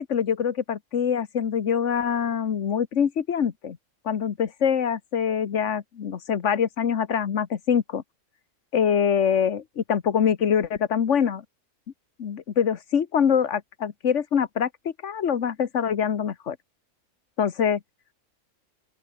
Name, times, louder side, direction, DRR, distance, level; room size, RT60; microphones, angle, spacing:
voice 1, 0.0-3.8 4.0-8.0 8.7-11.4 12.2-16.6 17.4-17.8, left 7 dB, 65° left, 1.5 m, -24 dB
open air
omnidirectional pair, 1.3 m